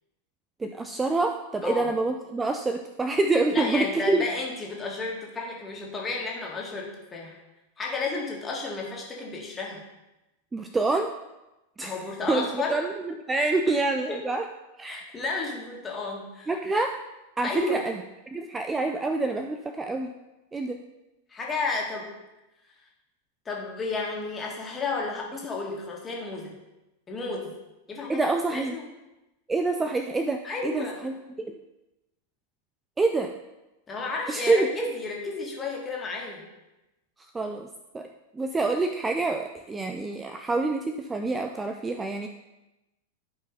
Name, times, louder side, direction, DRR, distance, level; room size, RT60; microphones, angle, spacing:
voice 1, 0.6-4.2 10.5-11.1 11.8-11.9 12.3-14.4 14.8-15.2 16.5-16.9 17.4-18.0 18.3-20.1 20.5-20.8 28.1-28.8 29.5-31.5 33.0-33.3 34.3-34.7 37.3-37.7 37.9-38.1 38.3-42.3, right 3 dB, 15° right, 5 dB, 0.5 m, -27 dB
voice 2, 3.5-7.4 7.8-9.8 11.8-12.8 14.1-14.2 14.9-16.5 17.4-18.0 21.3-22.1 23.5-26.5 27.1-27.5 27.9-28.9 30.4-31.0 33.9-36.4, left 3 dB, 20° left, -2 dB, 2.2 m, -32 dB
12.0 x 5.2 x 4.2 m, 0.99 s
figure-of-eight pair, 90°, 0 cm